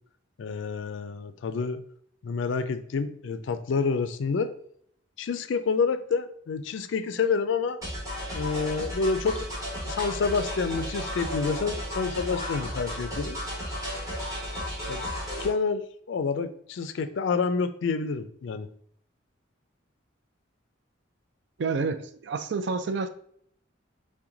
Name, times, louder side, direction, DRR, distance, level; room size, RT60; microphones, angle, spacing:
voice 1, 0.4-1.8 2.2-4.5 5.2-7.8 8.3-9.5 9.8-13.4 14.9-15.0 15.4-18.7, left 5 dB, 70° left, 0.4 m, -28 dB
sound 1, 7.8-15.5, equal, 15° right, 1.4 m, -34 dB
voice 2, 21.6-23.1, right 4 dB, 60° right, 0.4 m, -29 dB
5.8 x 2.2 x 3.8 m
head